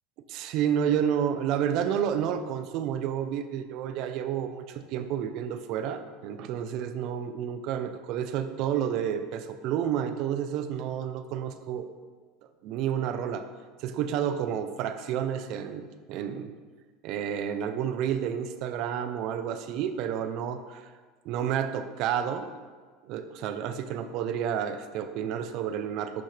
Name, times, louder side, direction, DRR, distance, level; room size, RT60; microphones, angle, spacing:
voice 1, 0.3-11.9 12.6-13.5 13.8-16.5 17.0-20.8 21.2-22.5 23.0-26.2, right 9 dB, 55° right, 9 dB, 0.7 m, -30 dB
10.5 x 6.2 x 3.4 m, 1.5 s
supercardioid pair, 140°, 0 cm